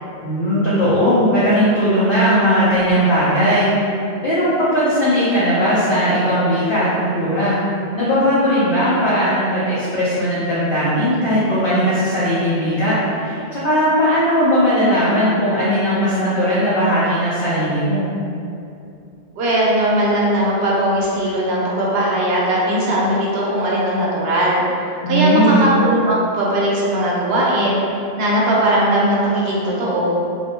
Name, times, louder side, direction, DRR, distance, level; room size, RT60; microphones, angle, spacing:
voice 1, 0.2-3.7 4.2-7.6 7.9-18.1 25.0-25.7, equal, 60° left, -10 dB, 0.7 m, -18 dB
voice 2, 19.4-24.6 25.1-27.8 28.2-30.2, right 1 dB, 70° right, -5 dB, 0.8 m, -18 dB
2.5 x 2.1 x 2.8 m, 2.6 s
omnidirectional pair, 1.1 m